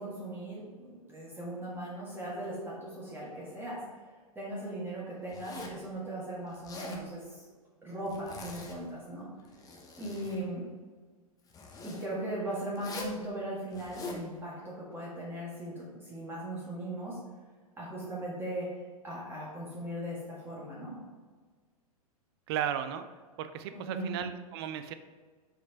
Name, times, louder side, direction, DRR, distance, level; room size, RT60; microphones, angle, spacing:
voice 1, 0.0-3.8 4.4-7.4 7.8-9.3 10.0-10.7 11.8-17.2 17.8-18.7 19.0-21.0 23.7-24.2, right 1 dB, 10° right, -6 dB, 1.7 m, -38 dB
Zipper (clothing), 5.3-5.8 6.5-7.0 8.1-8.8 9.4-10.4 11.5-12.1 12.8-13.2 13.7-14.2, left 3 dB, 20° left, 0.9 m, -43 dB
voice 2, 22.5-23.1 23.4-24.9, right 9 dB, 40° right, 10 dB, 0.4 m, -35 dB
5.1 x 5.0 x 4.4 m, 1.5 s
figure-of-eight pair, 100°, 19 cm